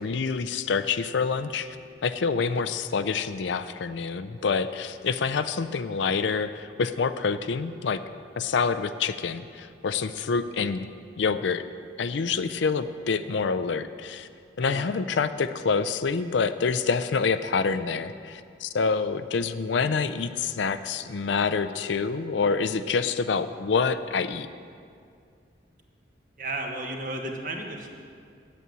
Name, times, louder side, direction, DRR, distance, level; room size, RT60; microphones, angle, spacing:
voice 1, 0.0-1.8 2.0-8.0 8.4-10.9 11.2-11.6 12.0-14.3 14.6-24.5, left 5 dB, 75° left, 12 dB, 0.4 m, -27 dB
voice 2, 26.4-28.0, right 2 dB, 45° right, 2 dB, 1.2 m, -33 dB
9.3 x 8.4 x 7.4 m, 2.3 s
head